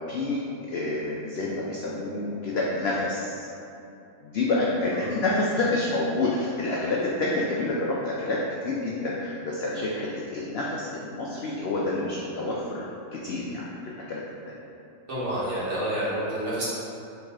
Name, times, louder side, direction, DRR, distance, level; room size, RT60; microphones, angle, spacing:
voice 1, 0.1-3.5 4.2-14.6, left 2 dB, 75° left, -4 dB, 0.5 m, -28 dB
voice 2, 15.1-16.7, right 1 dB, 55° right, -9 dB, 1.2 m, -28 dB
4.7 x 3.1 x 3.5 m, 2.8 s
omnidirectional pair, 1.6 m